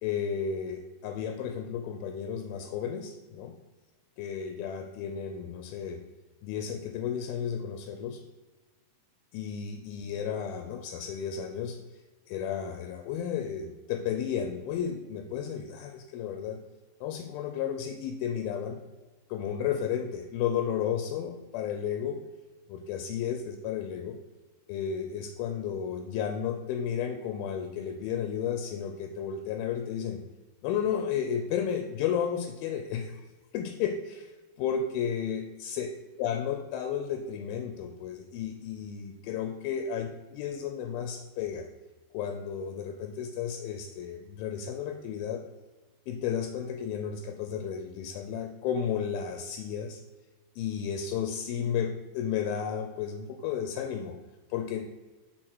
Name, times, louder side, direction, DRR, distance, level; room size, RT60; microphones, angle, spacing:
voice 1, 0.0-3.6 4.2-6.0 6.4-8.2 9.3-11.8 12.3-16.6 17.0-18.8 19.3-22.2 22.7-24.2 24.7-30.2 30.6-33.3 33.5-34.3 34.6-35.9 36.2-41.7 42.1-45.4 46.1-50.0 50.6-54.2 54.5-54.9, left 8 dB, 80° left, 5 dB, 2.3 m, -33 dB
6.2 x 4.1 x 4.5 m, 1.2 s
omnidirectional pair, 4.4 m